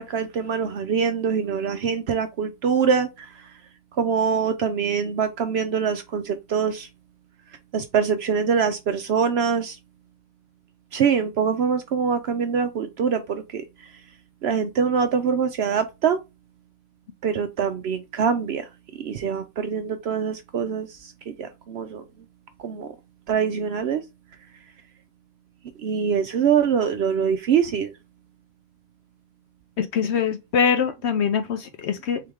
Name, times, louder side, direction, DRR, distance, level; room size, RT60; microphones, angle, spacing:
voice 1, 0.0-3.4 4.0-6.9 7.7-9.8 10.9-13.6 14.4-16.2 17.2-18.7 19.0-22.0 22.6-22.9 23.3-24.0 25.8-27.9, right 6 dB, 65° right, 0.7 m, -24 dB
voice 2, 29.8-32.2, left 7 dB, 65° left, 0.7 m, -23 dB
3.8 x 3.2 x 3.5 m
omnidirectional pair, 1.4 m